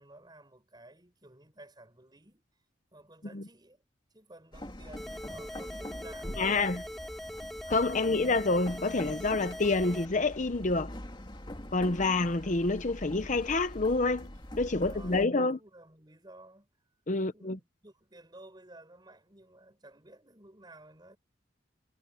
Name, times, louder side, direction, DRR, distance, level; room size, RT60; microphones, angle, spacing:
voice 1, 0.0-2.4 2.9-3.8 4.1-7.4 14.6-16.7 17.1-21.2, right 1 dB, 25° right, 6.7 m, -54 dB
sound 1, 4.5-15.3, left 1 dB, 25° left, 2.7 m, -44 dB
sound 2, 5.0-10.0, equal, ahead, 2.7 m, -42 dB
voice 2, 6.4-6.8 7.7-10.9 11.7-14.3 14.6-15.6 17.1-17.6, left 3 dB, 40° left, 0.8 m, -28 dB
head